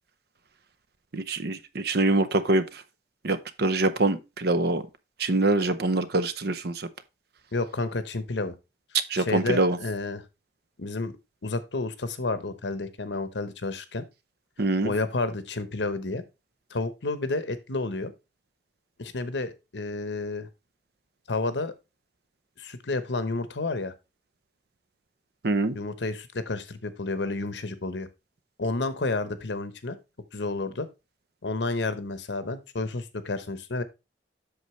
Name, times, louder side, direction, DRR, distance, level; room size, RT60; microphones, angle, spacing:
voice 1, 1.1-2.6 3.2-4.8 5.2-6.7 9.1-9.8 14.6-14.9 25.4-25.8, right 2 dB, 60° right, 0.8 m, -24 dB
voice 2, 7.5-8.5 9.1-10.2 10.8-11.1 11.4-14.0 14.8-16.2 16.7-18.1 19.0-20.5 21.3-21.7 22.6-23.9 25.7-28.1 28.6-30.0 30.3-30.9 31.4-33.8, left 3 dB, 75° left, 1.0 m, -30 dB
8.0 x 6.5 x 3.1 m
head